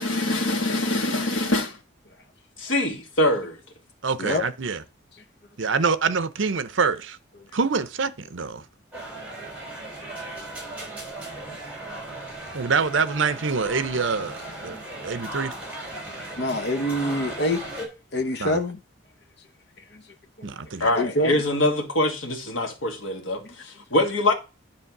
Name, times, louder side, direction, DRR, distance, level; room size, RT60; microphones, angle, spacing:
voice 1, 0.0-1.8 2.6-3.6 20.8-24.3, left 1 dB, 80° left, 1.7 m, -24 dB
voice 2, 4.0-4.8 5.6-7.2 7.5-8.6 12.5-14.8 15.0-15.5 18.4-18.6 20.4-20.9, right 5 dB, 75° right, 0.7 m, -25 dB
sound 1, 8.9-17.9, right 1 dB, 5° right, 3.4 m, -37 dB
voice 3, 16.1-17.6 18.1-18.8 19.9-20.0 20.4-20.5 20.9-21.3, left 1 dB, 55° left, 0.9 m, -26 dB
10.0 x 3.3 x 6.0 m
head